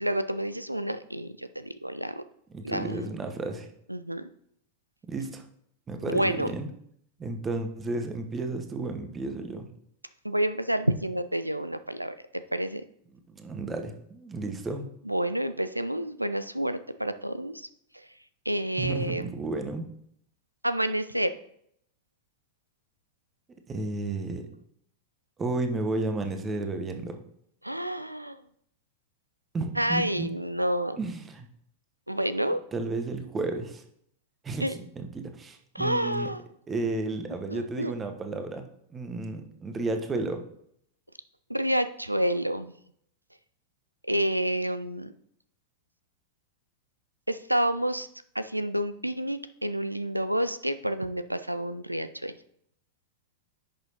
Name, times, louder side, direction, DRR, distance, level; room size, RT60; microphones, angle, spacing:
voice 1, 0.0-2.2 2.6-3.2 3.9-4.3 6.0-6.5 10.2-12.8 15.1-17.7 18.5-19.3 20.6-21.4 27.6-28.4 29.8-31.0 32.1-32.6 34.6-34.8 35.7-36.4 37.5-37.9 41.5-42.7 44.0-45.1 47.3-48.1 48.3-52.3, right 1 dB, 90° right, 12 dB, 0.4 m, -29 dB
voice 2, 2.5-3.7 5.0-5.4 5.9-6.7 7.2-9.7 13.3-14.9 18.8-19.9 23.7-24.5 25.4-27.2 29.5-30.3 31.0-31.5 32.7-33.8 34.4-36.3 36.7-38.7 38.9-40.4, right 3 dB, 20° right, 6 dB, 1.1 m, -32 dB
10.5 x 6.2 x 2.9 m, 0.70 s
figure-of-eight pair, 90°, 0 cm